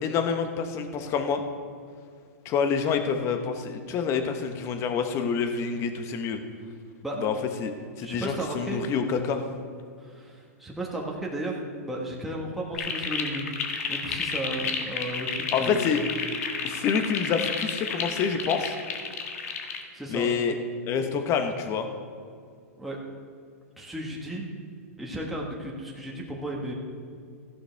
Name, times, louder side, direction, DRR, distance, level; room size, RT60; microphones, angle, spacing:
voice 1, 0.0-1.4 2.4-6.4 7.2-7.3 7.6-7.7 8.0-9.4 15.5-16.0 16.6-18.7 20.1-20.5 20.9-21.9, left 6 dB, 35° left, 7 dB, 1.1 m, -27 dB
voice 2, 8.0-8.8 10.0-11.5 11.8-13.6 13.9-15.9 19.9-20.3 22.8-23.0 23.8-24.5 25.0-26.7, right 1 dB, ahead, -3 dB, 1.5 m, -34 dB
sound 1, 12.7-19.8, left 5 dB, 70° left, 1.5 m, -32 dB
15.0 x 11.0 x 3.5 m, 2.2 s
hypercardioid pair, 120°, 8 cm